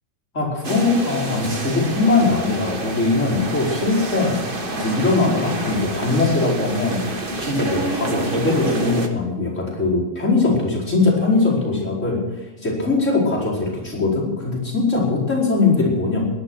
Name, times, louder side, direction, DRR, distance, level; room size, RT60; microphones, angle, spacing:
voice 1, 0.3-4.4 4.7-12.2 12.6-16.2, left 3 dB, 25° left, -4 dB, 4.9 m, -21 dB
sound 1, 0.6-9.1, right 2 dB, 85° right, 0.4 m, -28 dB
17.5 x 11.5 x 6.2 m, 1.2 s
omnidirectional pair, 3.4 m